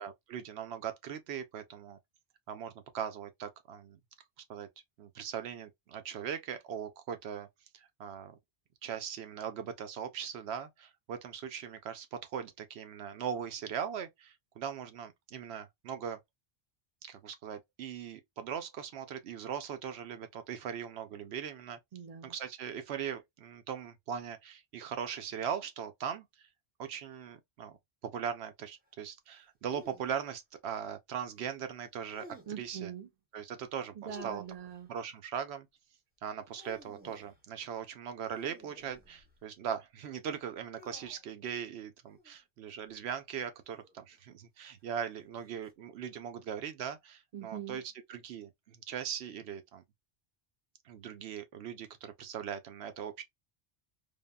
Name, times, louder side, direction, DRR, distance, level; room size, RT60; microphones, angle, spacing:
voice 1, 0.0-2.0 2.5-4.0 4.5-4.7 5.0-7.5 7.7-8.4 8.8-16.2 17.0-21.8 22.2-26.3 26.8-27.8 28.0-32.3 32.6-32.9 33.3-34.4 34.9-35.7 36.2-47.8 48.1-49.8 50.8-53.2, right 8 dB, 90° right, 0.9 m, -40 dB
voice 2, 21.9-22.3 32.5-33.1 33.9-34.9 47.3-47.8, right 9 dB, 50° right, 0.5 m, -43 dB
sound 1, 29.7-30.2 32.1-32.7 34.1-34.8 36.3-37.4 38.2-39.4 40.8-41.3 42.0-42.3 43.6-44.2 45.4-45.7, left 1 dB, 10° right, 0.6 m, -54 dB
3.5 x 2.1 x 2.2 m
omnidirectional pair, 1.1 m